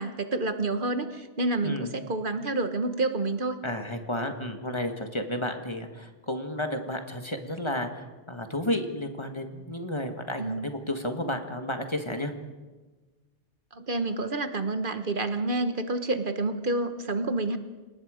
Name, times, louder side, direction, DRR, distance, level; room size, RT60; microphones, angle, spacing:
voice 1, 0.0-3.6 10.4-10.7 13.7-17.6, right 2 dB, 55° right, 8 dB, 1.3 m, -29 dB
voice 2, 1.6-1.9 3.6-12.3, left 1 dB, 30° left, 5 dB, 1.6 m, -32 dB
29.0 x 18.5 x 5.1 m, 1.3 s
omnidirectional pair, 1.0 m